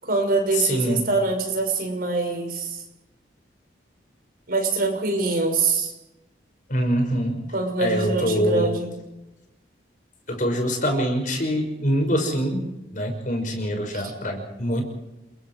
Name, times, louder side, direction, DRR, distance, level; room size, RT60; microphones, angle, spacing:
voice 1, 0.0-2.8 4.5-5.9 7.5-8.9 13.9-14.0, right 3 dB, 55° right, 3 dB, 6.2 m, -24 dB
voice 2, 0.5-1.1 6.7-7.4 7.8-8.7 10.3-12.6 12.9-14.8, equal, 45° left, 4 dB, 6.0 m, -24 dB
29.5 x 22.0 x 4.8 m, 0.98 s
head